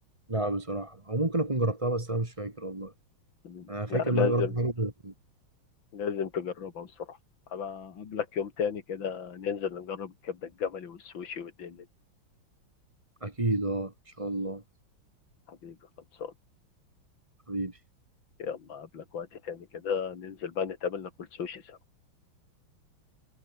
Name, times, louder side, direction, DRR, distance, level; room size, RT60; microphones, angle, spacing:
voice 1, 0.3-2.9 3.7-5.1 13.2-14.6 17.5-17.8, right 2 dB, 15° right, 2.3 m, -30 dB
voice 2, 3.4-4.5 5.9-7.2 7.5-11.8 15.5-15.8 16.1-16.3 18.4-21.8, left 7 dB, 65° left, 2.8 m, -34 dB
omnidirectional pair, 2.3 m